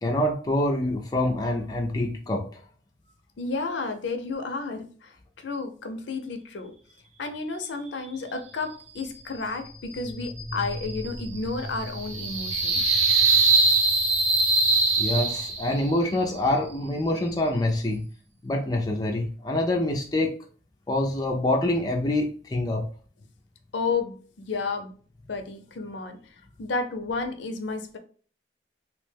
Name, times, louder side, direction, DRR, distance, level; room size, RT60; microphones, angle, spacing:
voice 1, 0.0-2.5 15.0-18.1 18.4-20.4 20.9-22.9, left 1 dB, 20° left, 1 dB, 0.3 m, -26 dB
voice 2, 3.4-6.7 7.2-13.0 23.7-24.9 25.3-28.0, left 4 dB, 75° left, 6 dB, 0.5 m, -32 dB
sound 1, 9.9-15.9, right 3 dB, 35° right, 0.6 m, -23 dB
2.9 x 2.1 x 3.2 m, 0.42 s
head